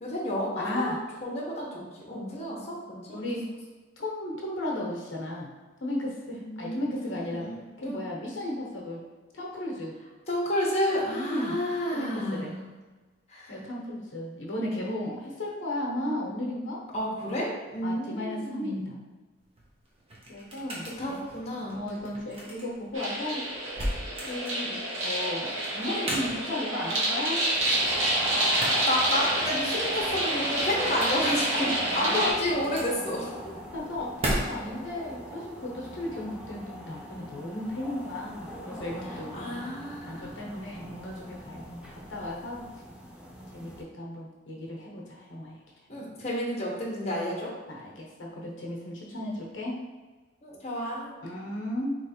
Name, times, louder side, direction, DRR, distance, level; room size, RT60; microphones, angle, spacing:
voice 1, 0.0-1.8 2.1-3.2 6.4-7.6 7.8-8.0 10.3-12.6 13.3-13.6 16.9-18.9 21.0-21.8 28.3-33.3 39.0-40.5 45.9-47.5 50.4-51.1, left 1 dB, 35° left, -4 dB, 1.0 m, -31 dB
voice 2, 0.6-1.0 3.1-3.5 4.0-5.5 5.8-7.5 7.8-9.0 9.3-10.0 11.1-11.6 11.9-12.5 13.5-16.8 17.8-19.0 20.3-21.2 21.7-23.4 24.2-27.4 31.6-31.7 32.0-32.2 33.7-39.3 40.0-42.6 43.5-45.6 47.7-49.8 51.2-52.0, left 1 dB, 85° left, -2 dB, 0.9 m, -35 dB
sound 1, 19.4-34.9, equal, 30° right, 0.9 m, -38 dB
sound 2, 22.9-32.3, right 1 dB, 90° right, 1.2 m, -28 dB
sound 3, 27.7-43.8, equal, 5° right, 0.5 m, -42 dB
3.4 x 3.2 x 4.3 m, 1.3 s
head